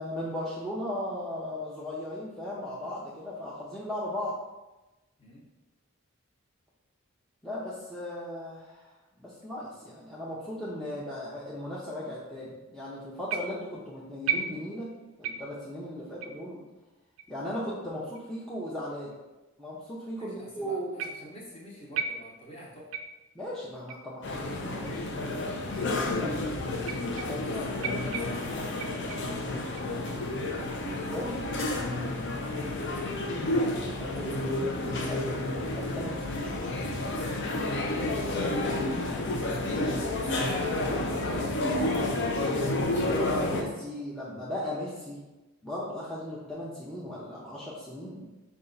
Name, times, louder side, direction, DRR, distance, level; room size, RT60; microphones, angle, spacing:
voice 1, 0.0-4.3 7.4-8.9 9.2-14.9 15.2-16.6 17.3-19.1 19.6-21.0 23.3-25.0 25.7-26.5 27.2-27.8 30.9-31.4 34.0-34.5 35.1-35.4 35.8-37.5 38.1-38.6 43.0-45.2 45.6-48.2, left 1 dB, ahead, -8 dB, 0.5 m, -37 dB
Creepy Guitar-Long Delay, 13.3-13.8 14.3-14.9 15.2-15.6 16.2-16.4 17.2-17.3 18.1-18.2 19.1-19.2 21.0-21.4 21.9-22.6 22.9-23.3 23.9-24.1 24.8-24.9 25.8-25.9 26.8-27.5 27.8-29.4 29.8-30.2 30.7-31.1, right 7 dB, 75° right, 0.3 m, -36 dB
voice 2, 20.2-22.9 27.4-29.0 32.4-33.2 34.1-34.5 35.0-35.4 38.3-38.9 39.5-42.1, left 1 dB, 25° left, -4 dB, 0.9 m, -44 dB
sound 1, 24.2-43.6, left 2 dB, 55° left, 0.6 m, -30 dB
5.3 x 2.3 x 3.8 m, 1.1 s
head